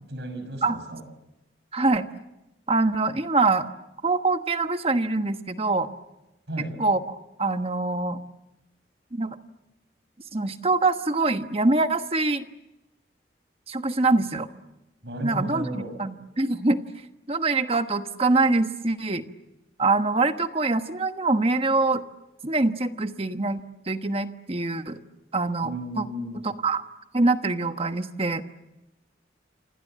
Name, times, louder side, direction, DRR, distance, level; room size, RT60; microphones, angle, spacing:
voice 1, 0.1-1.0 6.5-6.8 15.0-16.0 25.6-26.5, right 1 dB, 70° right, 7 dB, 6.1 m, -34 dB
voice 2, 1.7-2.1 2.7-3.7 4.0-5.9 6.8-7.0 7.4-8.2 9.1-9.4 10.3-12.5 13.7-14.5 15.2-16.8 17.3-19.2 19.8-22.0 22.4-23.6 23.9-25.0 25.3-25.7 26.0-26.1 26.6-26.8 27.1-28.4, right 3 dB, 35° right, 8 dB, 1.2 m, -24 dB
28.0 x 27.0 x 7.6 m, 0.97 s
head